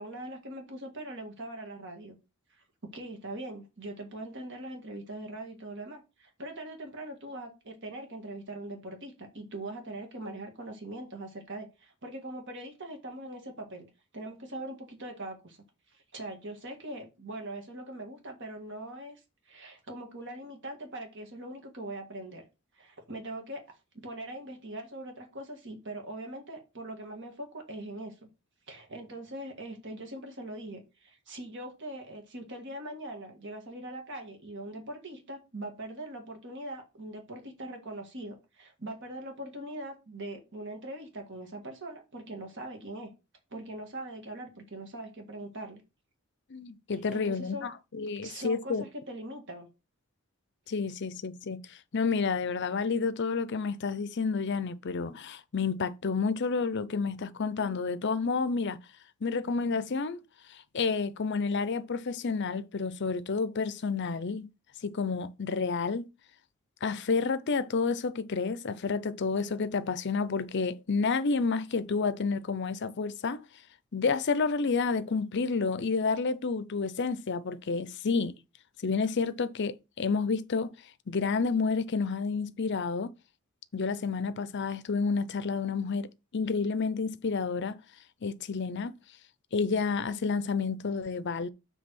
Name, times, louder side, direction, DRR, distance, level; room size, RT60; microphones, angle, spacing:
voice 1, 0.0-2.2 2.5-2.6 2.9-13.9 14.1-15.6 15.9-19.2 19.5-22.4 22.8-23.6 23.9-28.3 28.7-43.1 43.5-45.8 46.9-47.7 48.2-49.7, right 1 dB, 55° right, 1.7 m, -41 dB
voice 2, 46.5-48.8 50.7-58.8 59.2-60.2 60.7-64.5 64.8-66.1 66.8-73.4 73.9-78.4 78.8-80.7 81.1-83.1 83.7-86.1 86.3-87.8 88.2-88.9 89.5-91.5, left 4 dB, 50° left, 0.6 m, -30 dB
7.4 x 3.4 x 6.0 m
head